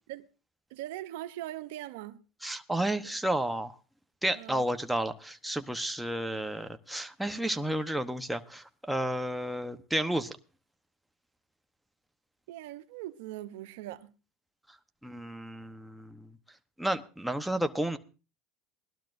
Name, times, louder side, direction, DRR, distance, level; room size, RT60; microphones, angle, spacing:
voice 1, 0.7-2.2 4.3-4.7 12.5-14.1, right 14 dB, 80° right, 0.7 m, -41 dB
voice 2, 2.4-3.8 4.2-10.3 15.0-16.3 16.8-18.0, right 1 dB, 5° right, 0.9 m, -32 dB
20.5 x 12.0 x 2.6 m
supercardioid pair, 110°, 0 cm